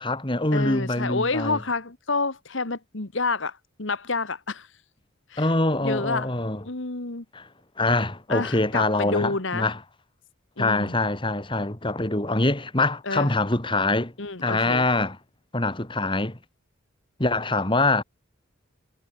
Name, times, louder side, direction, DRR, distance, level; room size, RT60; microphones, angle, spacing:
voice 1, 0.0-1.6 5.4-6.6 7.3-7.5 7.8-9.8 10.6-14.1 14.4-15.2 15.5-16.4 17.2-18.0, left 2 dB, 25° left, 2.3 m, -24 dB
voice 2, 0.5-4.7 5.3-5.5 5.8-6.3 6.6-7.2 8.3-9.7 10.6-11.0 13.0-13.3 14.2-14.9, left 3 dB, 65° left, 1.7 m, -28 dB
head